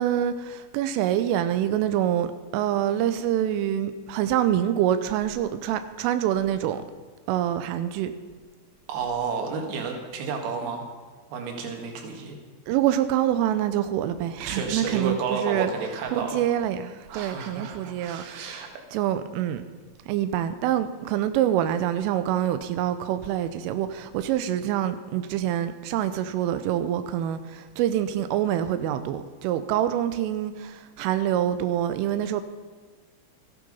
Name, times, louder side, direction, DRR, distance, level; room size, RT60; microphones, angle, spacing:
voice 1, 0.0-2.3 2.5-6.8 7.3-8.1 12.7-15.7 16.1-18.6 18.9-19.6 20.1-32.4, right 11 dB, 90° right, 3.3 m, -26 dB
voice 2, 8.9-10.9 11.3-12.4 14.5-16.4 17.1-18.7, right 5 dB, 60° right, 3.5 m, -31 dB
14.5 x 11.5 x 5.4 m
omnidirectional pair, 5.6 m